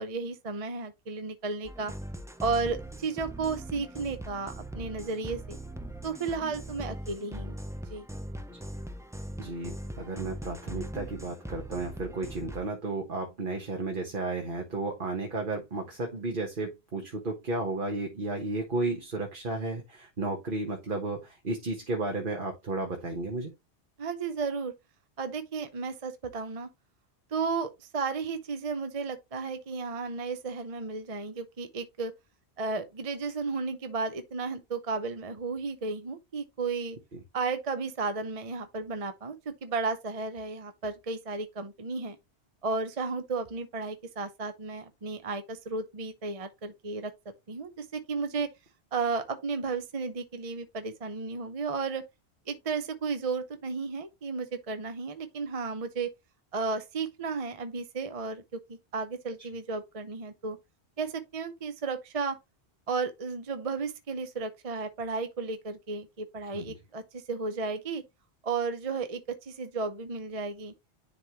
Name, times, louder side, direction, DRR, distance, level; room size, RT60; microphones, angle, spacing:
voice 1, 0.0-1.9 2.4-5.6 6.0-7.6 7.9-8.1 24.0-24.7 25.2-26.7 27.3-32.1 32.6-37.0 37.3-42.2 42.6-47.1 47.5-48.5 48.9-52.0 52.5-56.1 56.5-60.6 61.0-62.4 62.9-68.0 68.4-70.7, right 4 dB, 35° right, 0.8 m, -33 dB
sound 1, 1.6-12.6, right 1 dB, 5° right, 0.4 m, -40 dB
voice 2, 9.4-23.5 66.5-66.8, right 2 dB, 50° right, 1.4 m, -33 dB
10.5 x 3.6 x 3.0 m
omnidirectional pair, 1.1 m